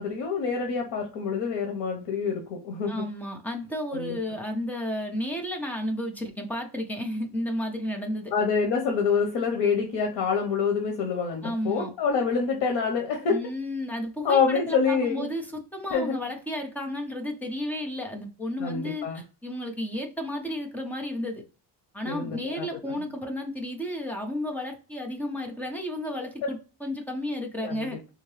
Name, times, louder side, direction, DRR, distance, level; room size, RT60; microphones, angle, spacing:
voice 1, 0.0-3.0 3.9-4.2 8.3-13.4 14.2-15.3 15.9-16.1 18.6-19.2 22.0-22.9 27.6-27.9, left 5 dB, 90° left, 3 dB, 0.9 m, -26 dB
voice 2, 2.9-8.3 11.4-11.9 13.3-21.4 21.9-28.0, left 1 dB, 5° left, 1 dB, 0.4 m, -32 dB
3.7 x 2.7 x 3.1 m, 0.34 s
cardioid pair, 180°, 41 cm